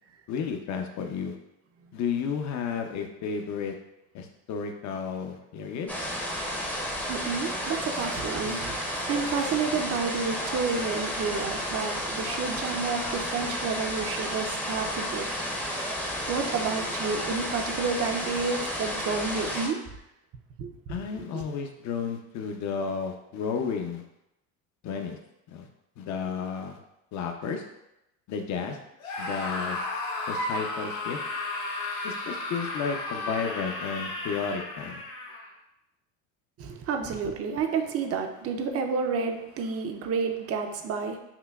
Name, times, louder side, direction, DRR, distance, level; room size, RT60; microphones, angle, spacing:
voice 1, 0.3-1.3 1.9-3.7 4.1-5.9 20.9-24.0 24.8-25.2 25.5-25.7 26.0-26.8 27.1-27.6 28.3-28.8 29.2-29.8 30.3-31.2 32.0-35.0, left 6 dB, 45° left, 5 dB, 0.6 m, -32 dB
sound 1, 5.9-19.7, equal, 5° left, 0.6 m, -32 dB
voice 2, 7.1-15.3 16.3-19.8 20.6-21.0 21.3-21.4 36.6-41.2, right 5 dB, 40° right, 5 dB, 0.5 m, -30 dB
Screaming, 29.0-35.5, left 2 dB, 90° left, 0.9 m, -33 dB
5.6 x 2.1 x 2.3 m, 0.88 s
supercardioid pair, 95°, 39 cm